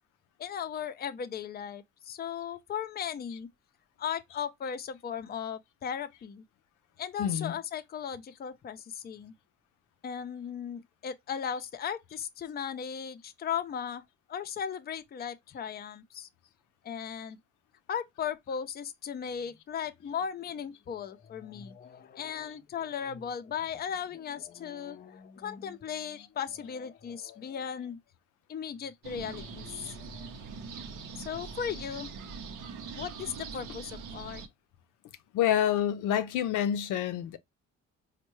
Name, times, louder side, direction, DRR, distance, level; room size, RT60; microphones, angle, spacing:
voice 1, 0.4-3.5 4.0-6.4 7.0-9.3 10.0-14.0 14.3-16.3 16.8-17.4 17.9-28.0 28.5-30.6 31.2-32.1 32.9-34.4, left 8 dB, 35° left, 0.4 m, -37 dB
voice 2, 7.2-7.5 35.3-37.4, left 10 dB, 85° left, 0.5 m, -27 dB
sound 1, 29.0-34.5, right 5 dB, 90° right, 0.7 m, -42 dB
4.3 x 2.1 x 3.0 m
cardioid pair, 90°, 30 cm